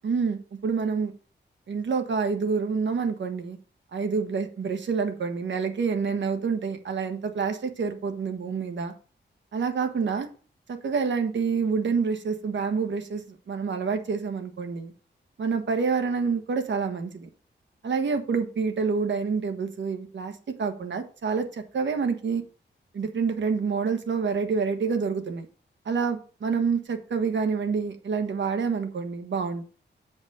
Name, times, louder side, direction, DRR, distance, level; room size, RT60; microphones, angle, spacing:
voice 1, 0.0-1.1 1.7-3.6 3.9-8.9 9.5-10.3 10.7-14.9 15.4-17.3 17.8-20.3 20.6-22.4 22.9-25.5 25.8-29.6, right 5 dB, 75° right, 6 dB, 1.4 m, -27 dB
8.0 x 5.2 x 4.9 m, 0.37 s
wide cardioid pair, 125°, 19 cm